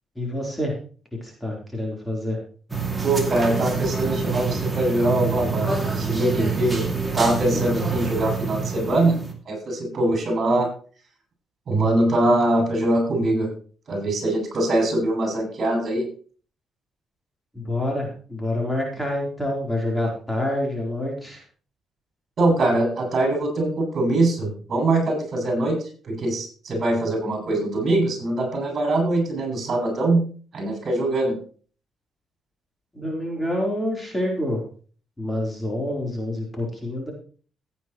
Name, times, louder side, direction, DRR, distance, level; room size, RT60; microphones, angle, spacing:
voice 1, 0.2-0.8 1.2-2.4 7.5-7.8 17.5-21.4 32.9-34.6 35.2-37.1, left 1 dB, 10° left, -1 dB, 4.1 m, -27 dB
sound 1, 2.7-9.3, right 5 dB, 15° right, 2.7 m, -26 dB
voice 2, 3.0-5.7 6.0-6.8 7.1-9.2 9.5-10.7 11.7-13.5 13.9-16.1 22.4-25.8 26.0-30.2 30.5-31.4, right 2 dB, 50° right, 2 dB, 7.1 m, -22 dB
16.0 x 9.2 x 3.2 m, 0.41 s
cardioid pair, 90°, 0 cm